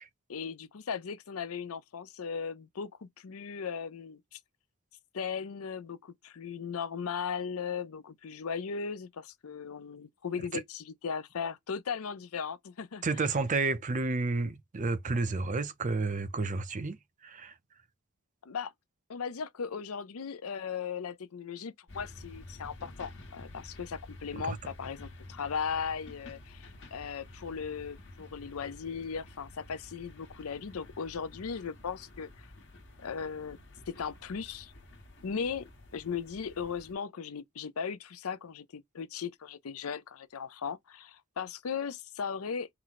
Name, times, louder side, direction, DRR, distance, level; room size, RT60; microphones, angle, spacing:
voice 1, 0.3-4.4 5.1-13.2 18.4-18.7 19.1-32.5 33.0-33.6 33.9-34.7 35.2-35.7 35.9-42.7, left 6 dB, 75° left, 0.5 m, -37 dB
voice 2, 13.0-17.5 24.3-24.6, right 3 dB, 35° right, 0.5 m, -31 dB
sound 1, 21.9-36.9, left 2 dB, 55° left, 1.2 m, -50 dB
4.4 x 2.1 x 3.9 m
head